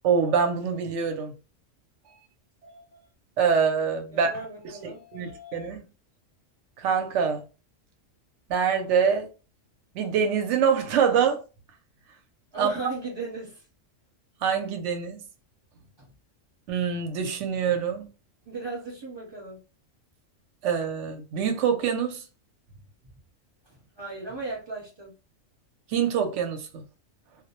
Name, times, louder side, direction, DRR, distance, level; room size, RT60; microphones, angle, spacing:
voice 1, 0.0-1.3 2.7-2.8 3.4-4.3 4.8-5.8 6.8-7.4 8.5-9.3 9.9-11.4 12.6-12.9 14.4-15.2 16.7-18.1 20.6-22.2 25.9-26.8, right 6 dB, 70° right, 0.9 m, -25 dB
voice 2, 4.1-5.7 12.5-13.6 16.0-16.1 18.4-19.6 23.7-25.1, right 3 dB, 25° right, 0.8 m, -37 dB
2.2 x 2.0 x 2.8 m
omnidirectional pair, 1.3 m